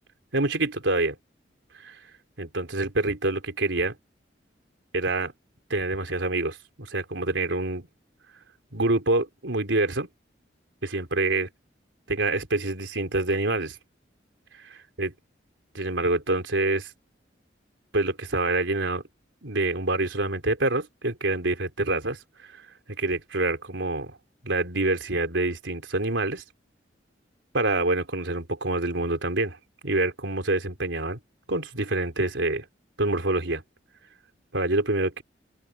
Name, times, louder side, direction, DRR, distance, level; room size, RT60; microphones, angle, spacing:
voice 1, 0.3-1.2 1.8-2.0 2.4-4.0 4.9-5.3 5.7-7.9 8.7-10.1 10.8-11.5 12.1-13.8 15.0-15.1 15.7-16.9 17.9-19.0 19.4-22.2 22.5-22.6 23.0-24.2 24.4-26.4 27.5-29.6 29.8-31.2 31.5-32.7 33.0-33.6 34.5-35.2, right 2 dB, 90° right, 3.7 m, -26 dB
open air
head